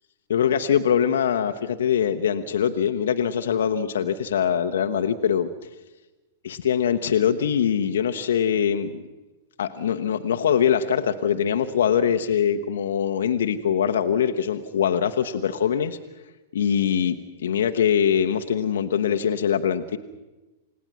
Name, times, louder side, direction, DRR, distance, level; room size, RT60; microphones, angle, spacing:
voice 1, 0.3-5.5 6.4-9.0 9.6-16.0 16.5-20.0, left 8 dB, 60° left, 7 dB, 1.0 m, -23 dB
29.0 x 18.0 x 6.1 m, 1.1 s
figure-of-eight pair, 100°, 0 cm